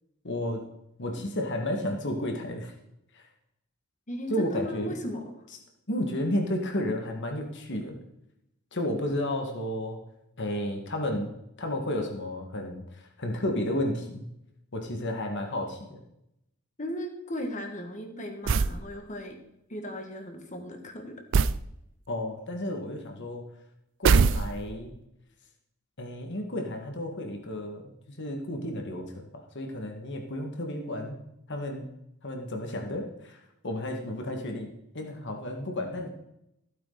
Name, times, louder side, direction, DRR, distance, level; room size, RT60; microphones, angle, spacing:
voice 1, 0.2-0.6 1.0-2.7 3.1-3.3 4.3-4.9 5.9-8.0 8.7-10.0 10.4-11.3 11.6-14.3 14.7-16.0 22.1-23.5 24.0-24.9 26.0-31.2 31.5-31.9 32.2-34.7 34.9-36.1, left 1 dB, 55° left, 3 dB, 1.8 m, -32 dB
voice 2, 4.1-5.2 16.8-19.4 19.7-21.2, left 1 dB, 35° left, 4 dB, 1.8 m, -36 dB
sound 1, 18.5-18.8 21.3-21.7 24.0-24.8, right 5 dB, 55° right, 0.4 m, -22 dB
15.0 x 8.8 x 4.0 m, 0.81 s
head